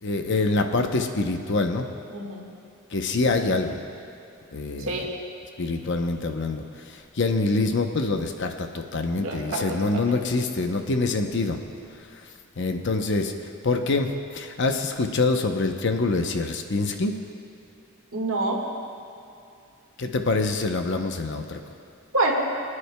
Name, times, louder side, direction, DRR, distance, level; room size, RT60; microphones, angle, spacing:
voice 1, 0.0-1.9 2.9-3.8 4.5-5.0 5.6-11.6 12.6-13.3 13.6-17.1 20.0-21.6, left 3 dB, 60° left, 5 dB, 0.7 m, -25 dB
voice 2, 2.1-2.4 4.8-5.1 9.1-10.1 18.1-18.6 22.1-22.3, right 2 dB, 75° right, -1 dB, 1.7 m, -27 dB
25.0 x 9.7 x 2.2 m, 2.7 s
head